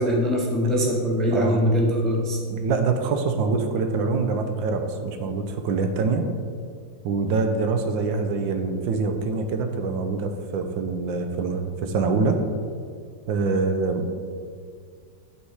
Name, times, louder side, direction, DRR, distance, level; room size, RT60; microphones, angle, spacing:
voice 1, 0.0-2.4, equal, ahead, -1 dB, 0.6 m, -22 dB
voice 2, 2.5-6.2 7.0-12.4 13.3-14.1, right 4 dB, 80° right, 6 dB, 1.5 m, -25 dB
11.5 x 4.3 x 4.8 m, 2.1 s
omnidirectional pair, 2.0 m